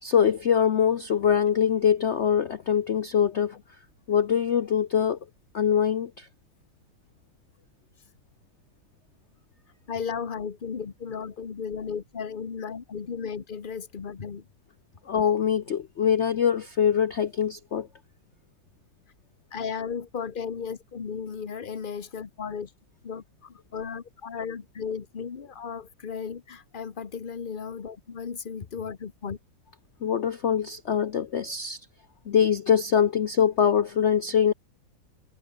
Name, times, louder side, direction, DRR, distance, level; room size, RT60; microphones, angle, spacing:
voice 1, 0.0-3.6 4.1-5.2 5.5-6.3 15.1-17.9 30.0-31.8 32.3-34.5, left 8 dB, 70° left, 0.6 m, -23 dB
voice 2, 9.9-14.5 19.5-22.7 23.0-29.4, left 6 dB, 35° left, 1.0 m, -35 dB
omnidirectional pair, 2.1 m